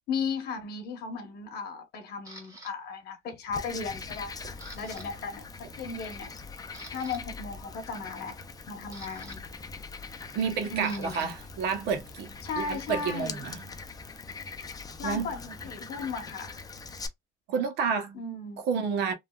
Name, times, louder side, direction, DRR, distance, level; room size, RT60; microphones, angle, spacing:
voice 1, 0.1-4.3 4.7-6.3 6.9-8.4 8.7-9.4 10.7-11.3 12.4-13.5 15.0-16.6 18.1-18.6, left 4 dB, 70° left, 1.0 m, -36 dB
Camera, 2.2-2.7 3.3-3.7 4.0-5.1 5.3-5.5 6.1-6.2 6.6-7.2 8.4-11.3 11.6-14.2, right 2 dB, 20° right, 1.5 m, -50 dB
Frog, 3.5-17.1, left 4 dB, 20° left, 0.5 m, -42 dB
voice 2, 10.3-13.6 15.0-15.3 17.5-18.2 18.6-19.1, right 6 dB, 80° right, 0.8 m, -30 dB
3.2 x 2.3 x 2.3 m
cardioid pair, 110°, 17 cm